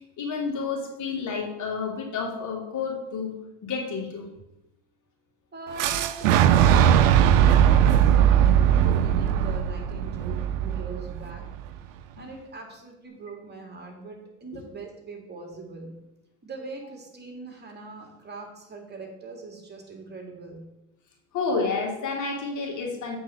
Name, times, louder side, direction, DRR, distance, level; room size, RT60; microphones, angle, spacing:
voice 1, 0.2-3.4 3.6-4.3 5.9-6.1 21.3-23.2, left 4 dB, 50° left, 0 dB, 2.5 m, -30 dB
voice 2, 5.5-11.5 12.2-15.9 16.4-20.7, right 3 dB, 25° right, 1 dB, 2.4 m, -41 dB
Boom, 5.8-11.7, right 9 dB, 90° right, 0.5 m, -19 dB
8.0 x 4.4 x 6.5 m, 0.88 s
hypercardioid pair, 75°, 38 cm